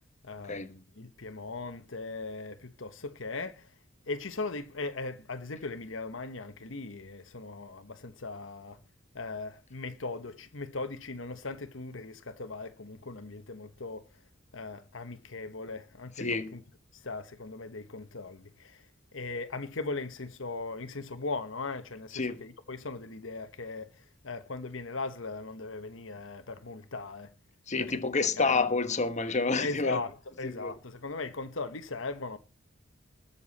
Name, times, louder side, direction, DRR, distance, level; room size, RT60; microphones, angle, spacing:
voice 1, 0.2-3.7 4.1-8.8 9.1-14.0 14.5-16.6 16.9-18.9 19.1-27.3 27.8-28.0 28.4-28.7 29.6-32.4, left 3 dB, 70° left, 1.2 m, -39 dB
voice 2, 16.2-16.5 22.1-22.4 27.7-30.0 30.4-30.7, left 4 dB, 35° left, 1.3 m, -29 dB
20.5 x 7.1 x 4.2 m
head